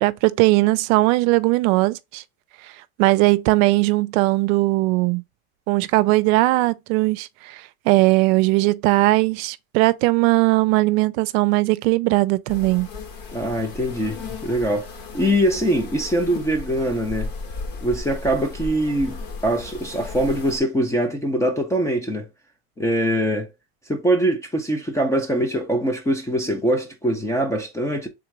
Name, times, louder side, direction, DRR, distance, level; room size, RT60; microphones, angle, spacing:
voice 1, 0.0-2.2 3.0-5.2 5.7-12.9, right 21 dB, 70° right, 0.5 m, -19 dB
sound 1, 12.5-20.6, left 3 dB, 55° left, 1.3 m, -35 dB
voice 2, 13.3-17.3 17.8-22.3 22.8-23.5 23.9-28.1, right 1 dB, 10° left, 0.3 m, -23 dB
3.7 x 2.9 x 4.5 m
supercardioid pair, 140°, 43 cm